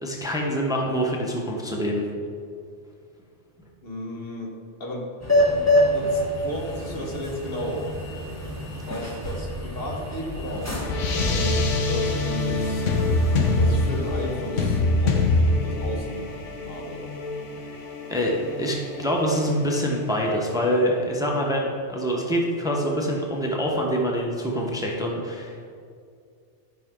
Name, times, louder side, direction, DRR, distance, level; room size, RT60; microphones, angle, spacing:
voice 1, 0.0-2.1 18.1-18.3 18.6-25.7, equal, 5° right, -1 dB, 0.9 m, -25 dB
voice 2, 3.8-4.5 4.8-5.1 5.5-7.9 8.9-10.8 11.2-12.9 13.6-15.2 15.6-16.3 16.6-17.0, equal, 55° left, -1 dB, 1.5 m, -34 dB
sound 1, 5.2-14.1, left 1 dB, 15° left, 1.1 m, -27 dB
sound 2, 9.8-20.5, left 2 dB, 85° left, 1.2 m, -25 dB
11.0 x 5.5 x 3.7 m, 2.3 s
omnidirectional pair, 1.2 m